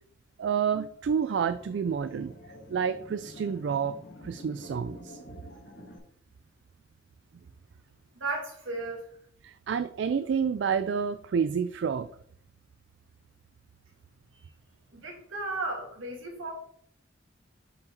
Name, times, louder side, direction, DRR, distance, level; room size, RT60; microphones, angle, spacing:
voice 1, 0.4-2.4 2.7-4.0 4.2-5.2 9.4-12.1, right 7 dB, 60° right, 12 dB, 0.3 m, -29 dB
sound 1, 1.2-6.0, left 1 dB, 55° left, 2.0 m, -48 dB
voice 2, 8.1-9.1 14.9-16.5, right 2 dB, 80° right, 0 dB, 2.1 m, -34 dB
5.7 x 5.0 x 3.9 m, 0.63 s
head